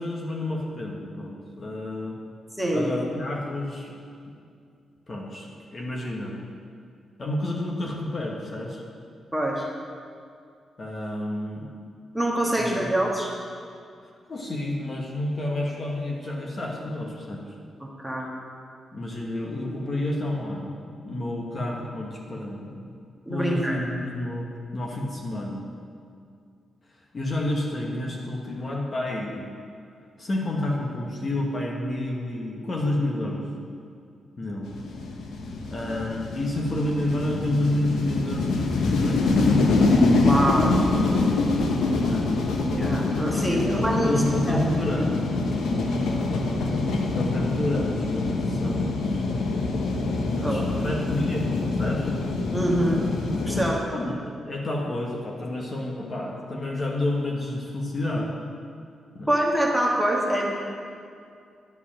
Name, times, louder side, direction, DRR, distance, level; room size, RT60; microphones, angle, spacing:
voice 1, 0.0-2.2 2.7-4.0 5.1-6.4 7.2-8.8 10.8-11.7 12.5-12.9 14.0-17.4 18.9-20.8 21.0-22.9 23.3-24.5 24.7-25.6 27.1-29.5 30.2-33.4 34.4-34.7 35.7-39.2 42.1-42.4 43.3-45.1 47.1-49.2 50.3-52.1 53.9-58.3 59.1-59.3, left 1 dB, 35° left, -1 dB, 1.3 m, -30 dB
voice 2, 2.6-2.9 9.3-9.7 12.1-13.3 17.8-18.3 23.3-23.8 40.2-40.7 42.7-44.1 44.4-44.7 50.4-50.9 52.5-53.0 53.5-53.8 59.3-60.5, right 1 dB, ahead, -3 dB, 1.4 m, -25 dB
sound 1, 34.6-53.7, left 3 dB, 90° left, 1.0 m, -25 dB
11.0 x 4.9 x 7.4 m, 2.3 s
cardioid pair, 130°, 0 cm